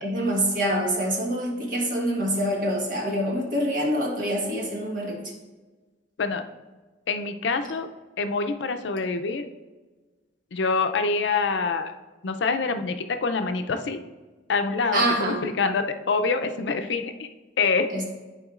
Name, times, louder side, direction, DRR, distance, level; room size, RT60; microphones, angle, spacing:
voice 1, 0.0-5.2 14.9-15.4 17.9-18.0, right 1 dB, 50° right, -1 dB, 1.4 m, -25 dB
voice 2, 7.1-7.9 8.2-9.5 10.5-11.9 12.2-14.0 14.5-17.3 17.6-17.9, left 4 dB, 75° left, 7 dB, 0.5 m, -25 dB
10.5 x 4.5 x 2.4 m, 1.3 s
head